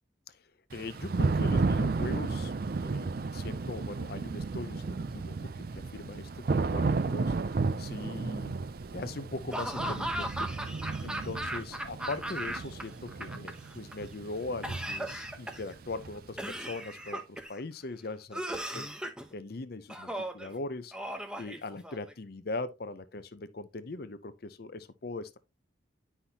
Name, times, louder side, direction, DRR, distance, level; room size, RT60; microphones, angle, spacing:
voice 1, 0.7-2.5 2.8-8.5 8.9-10.5 11.0-18.9 19.3-20.9 21.4-25.4, left 3 dB, 50° left, 0.6 m, -40 dB
Thunder / Rain, 0.7-16.5, right 3 dB, 50° right, 0.4 m, -33 dB
Laughter / Cough, 9.5-12.8 13.1-13.9 14.6-15.7 16.4-17.6 18.3-19.3 19.9-20.5 20.9-22.1, right 1 dB, 5° right, 0.9 m, -37 dB
9.8 x 5.7 x 2.8 m
head